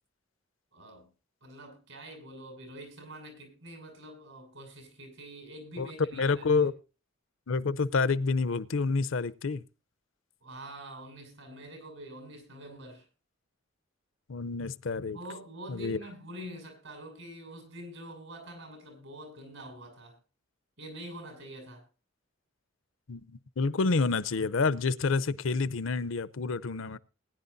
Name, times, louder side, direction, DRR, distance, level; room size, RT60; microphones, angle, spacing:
voice 1, 0.7-1.1 1.4-6.7 10.4-13.1 15.1-20.2 20.8-21.8, right 1 dB, 75° right, 6.3 m, -45 dB
voice 2, 6.1-6.7 7.5-9.6 14.3-15.2 15.7-16.0 23.1-27.0, left 4 dB, 75° left, 0.6 m, -28 dB
20.5 x 10.5 x 2.6 m
head